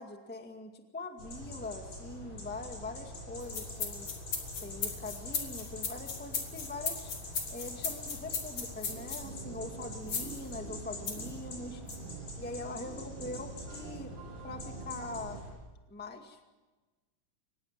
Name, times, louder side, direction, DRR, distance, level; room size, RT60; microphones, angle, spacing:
voice 1, 0.0-4.1 4.6-7.1 7.5-11.8 12.4-14.1 14.4-15.4 15.9-16.6, left 2 dB, 5° left, 5 dB, 1.1 m, -42 dB
sound 1, 1.2-15.5, left 2 dB, 35° left, 8.1 m, -45 dB
sound 2, 3.4-9.2 10.1-10.4 11.1-11.3 11.9-12.0, left 5 dB, 55° left, 4.0 m, -36 dB
sound 3, 8.8-15.4, right 8 dB, 70° right, 2.6 m, -47 dB
24.5 x 20.5 x 7.5 m, 1.2 s
omnidirectional pair, 3.8 m